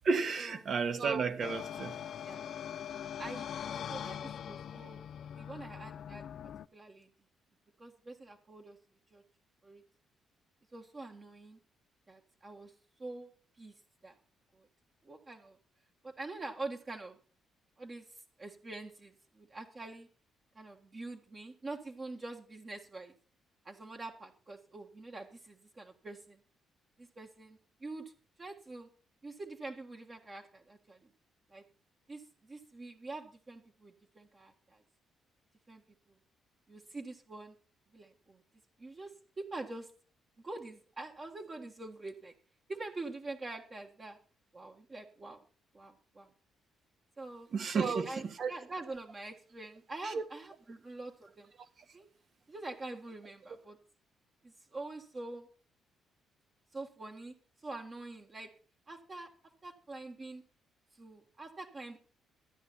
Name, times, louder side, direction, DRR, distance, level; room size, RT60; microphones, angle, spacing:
voice 1, 0.0-2.0 47.5-48.5 50.0-50.2, right 5 dB, 55° right, 1.5 m, -32 dB
sound 1, 1.4-6.7, left 9 dB, 65° left, 0.4 m, -42 dB
voice 2, 2.3-2.6 3.2-3.5 3.9-5.0 5.3-6.3 6.7-7.1 7.8-8.8 9.1-9.2 9.6-9.8 10.7-11.6 12.1-12.7 13.0-13.3 13.6-13.7 14.0-14.2 14.5-14.7 15.0-15.6 16.0-17.2 17.8-18.1 18.4-20.1 20.6-23.1 23.7-26.4 27.0-28.1 28.4-28.9 29.2-31.1 31.5-31.6 32.1-34.8 35.7-35.8 36.7-37.6 37.9-38.4 38.8-39.9 40.4-42.3 42.7-44.2 44.5-45.4 45.7-46.3 47.2-47.5 47.8-51.5 51.9-52.1 52.5-53.8 54.4-55.5 56.7-57.3 57.6-58.5 58.9-59.3 59.6-60.4 61.0-62.0, right 2 dB, 35° right, 1.7 m, -45 dB
13.0 x 9.8 x 4.3 m
cardioid pair, 90°, 0 cm